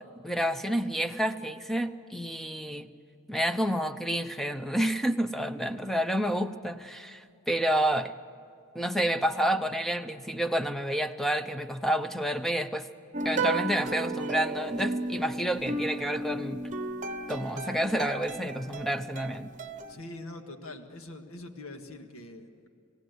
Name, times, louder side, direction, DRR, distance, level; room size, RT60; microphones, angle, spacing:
voice 1, 0.2-2.9 3.3-8.1 8.7-12.9 13.2-16.6 17.3-19.5, equal, ahead, 9 dB, 0.7 m, -29 dB
sound 1, 13.1-20.0, right 2 dB, 35° right, 1.0 m, -34 dB
voice 2, 19.9-22.7, left 2 dB, 70° left, 5 dB, 1.8 m, -43 dB
28.0 x 17.0 x 8.2 m, 2.5 s
head